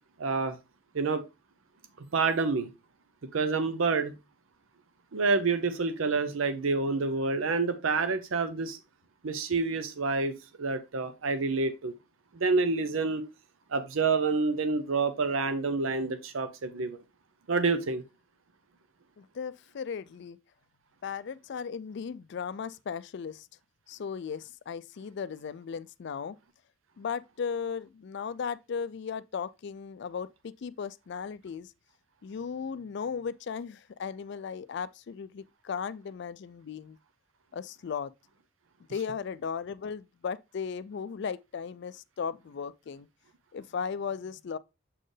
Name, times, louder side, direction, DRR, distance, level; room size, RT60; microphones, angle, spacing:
voice 1, 0.2-0.6 0.9-1.2 2.0-2.7 3.3-4.1 5.1-8.8 9.2-11.9 12.3-13.2 13.7-17.0 17.5-18.0, right 4 dB, 80° right, 0.6 m, -28 dB
voice 2, 19.2-20.4 21.0-23.5 23.9-26.4 27.0-31.7 32.2-37.0 37.5-38.1 38.9-43.1 43.5-44.6, left 6 dB, 60° left, 0.4 m, -36 dB
7.4 x 4.3 x 3.2 m
head